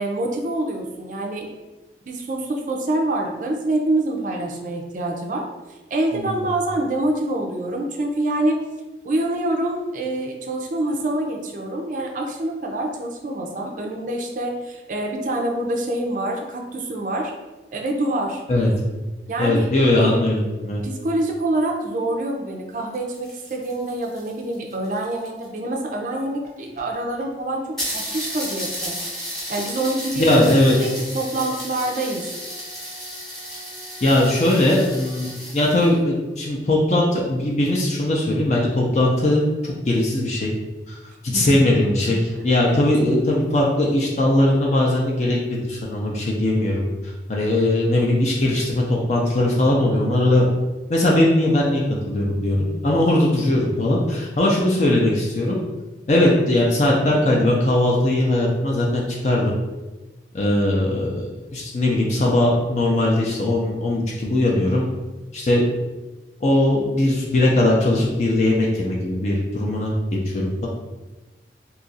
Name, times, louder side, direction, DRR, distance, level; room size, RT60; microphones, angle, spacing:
voice 1, 0.0-1.5 2.1-8.6 9.0-17.3 17.7-18.4 19.3-19.7 20.8-28.9 29.5-30.5 30.8-32.2 41.3-41.5 42.7-42.9, right 1 dB, 45° right, 0 dB, 0.4 m, -26 dB
voice 2, 19.4-20.8 30.2-30.8 34.0-40.5 40.9-41.0 41.2-50.5 50.9-52.6 52.8-55.6 56.1-59.5 60.3-64.9 65.3-65.6 66.4-70.7, left 1 dB, 40° left, -3 dB, 0.4 m, -20 dB
sound 1, 22.8-25.6 26.4-26.5 26.8-26.9 27.2-27.3 27.8-36.0, equal, ahead, 0.9 m, -33 dB
2.8 x 2.4 x 3.9 m, 1.1 s
head